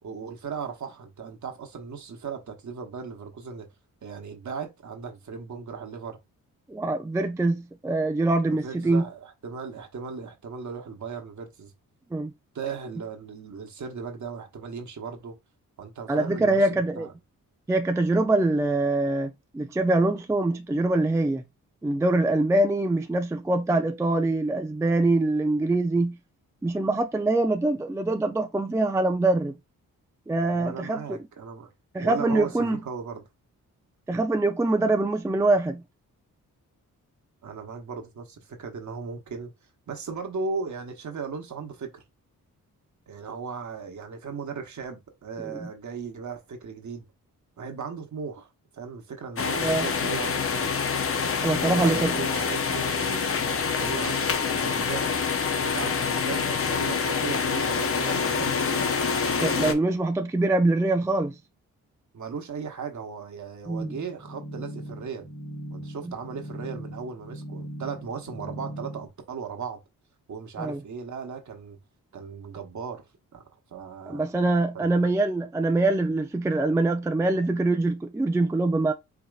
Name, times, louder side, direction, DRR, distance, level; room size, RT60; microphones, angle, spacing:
voice 1, 0.0-3.7 4.0-6.2 8.5-11.7 12.5-15.4 15.8-17.1 30.4-31.7 32.0-33.2 37.4-39.5 39.9-42.0 43.1-47.0 47.6-50.8 51.5-55.2 55.6-59.0 62.1-65.3 65.7-69.8 70.3-71.8 72.1-73.1 73.3-73.4 73.7-74.2 74.7-74.9, right 5 dB, 55° right, 1.2 m, -37 dB
voice 2, 6.7-9.1 12.1-12.3 16.1-17.1 17.7-21.4 21.8-26.2 26.6-29.6 30.3-31.2 31.9-32.8 34.1-35.8 45.4-45.7 49.6-49.9 51.4-52.2 59.4-61.4 63.7-63.9 66.0-66.1 70.6-70.8 74.1-78.9, right 2 dB, 10° right, 0.4 m, -24 dB
sound 1, 49.4-59.7, left 5 dB, 40° left, 0.7 m, -26 dB
sound 2, 63.8-69.1, right 1 dB, 25° left, 1.6 m, -39 dB
4.9 x 2.8 x 2.4 m
cardioid pair, 60°, 35 cm